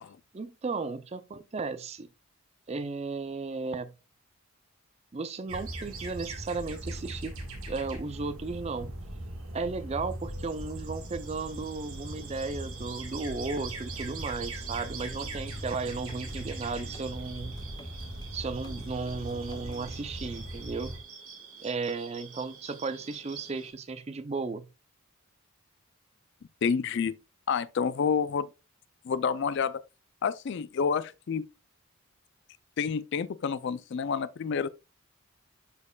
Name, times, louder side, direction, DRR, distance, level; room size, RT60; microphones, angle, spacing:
voice 1, 0.3-2.1 2.7-3.9 5.1-7.4 7.7-8.9 9.5-17.6 18.3-21.0 21.6-24.7, right 4 dB, 30° right, 0.4 m, -35 dB
sound 1, 5.5-21.0, right 1 dB, 70° right, 1.7 m, -40 dB
sound 2, 11.0-23.7, right 5 dB, 90° right, 4.4 m, -48 dB
sound 3, 14.6-14.8 15.2-18.3 18.6-20.0, equal, 20° left, 0.7 m, -47 dB
voice 2, 26.6-27.1 27.5-28.5 29.0-29.8 30.2-31.5 32.8-34.7, left 6 dB, 50° left, 0.3 m, -29 dB
12.0 x 4.3 x 2.3 m
head